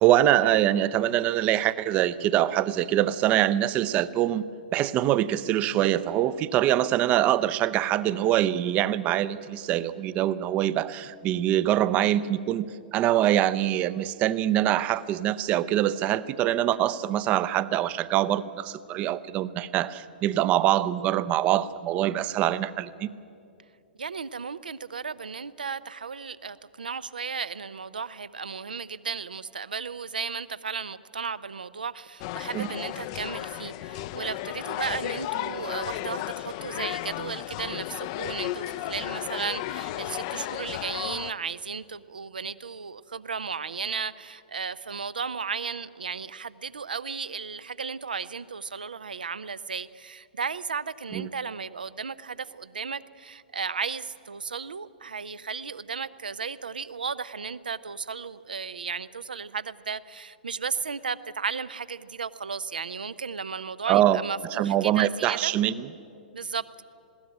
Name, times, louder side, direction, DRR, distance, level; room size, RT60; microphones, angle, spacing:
voice 1, 0.0-4.5 4.7-23.1 32.5-32.7 51.1-51.3 63.9-64.2 64.5-65.9, right 12 dB, 25° right, 17 dB, 0.6 m, -24 dB
voice 2, 24.0-65.5 66.3-66.7, right 5 dB, 70° right, 16 dB, 0.6 m, -34 dB
sound 1, 32.2-41.3, left 15 dB, 40° left, 0.5 m, -34 dB
20.5 x 16.5 x 8.9 m, 2.6 s
figure-of-eight pair, 110°, 5 cm